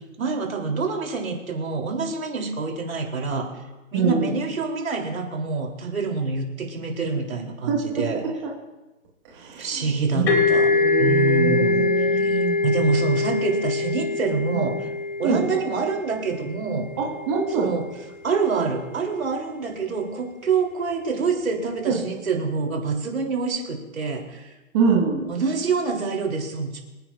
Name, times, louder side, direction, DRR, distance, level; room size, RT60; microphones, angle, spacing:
voice 1, 0.2-3.5 3.9-8.2 9.6-10.7 11.0-14.9 15.2-16.9 17.5-17.9 18.2-24.5 25.3-26.8, right 4 dB, 80° right, 1 dB, 3.5 m, -26 dB
voice 2, 3.9-4.3 7.7-8.0 8.4-8.5 9.3-12.6 14.5-14.7 15.2-15.5 17.0-17.7 21.9-22.0 24.7-25.3, right 5 dB, 20° right, -3 dB, 1.7 m, -25 dB
sound 1, 10.3-17.8, left 4 dB, 50° left, 3.0 m, -24 dB
25.5 x 9.8 x 2.5 m, 1.1 s
hypercardioid pair, 165°, 40 cm